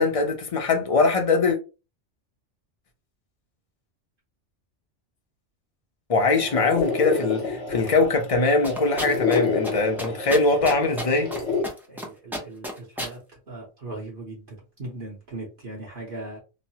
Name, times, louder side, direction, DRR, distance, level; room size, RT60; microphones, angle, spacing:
voice 1, 0.0-1.6 6.1-11.3, left 3 dB, 35° left, 0.6 m, -22 dB
sound 1, 6.3-11.6, left 4 dB, 75° left, 1.3 m, -29 dB
sound 2, 8.6-9.4 9.6-9.7 10.0-11.4 11.6-12.1 12.3-13.1, equal, 5° right, 0.4 m, -31 dB
voice 2, 11.9-13.2 13.5-16.4, right 2 dB, 50° right, 1.1 m, -38 dB
3.1 x 2.1 x 2.7 m
omnidirectional pair, 1.2 m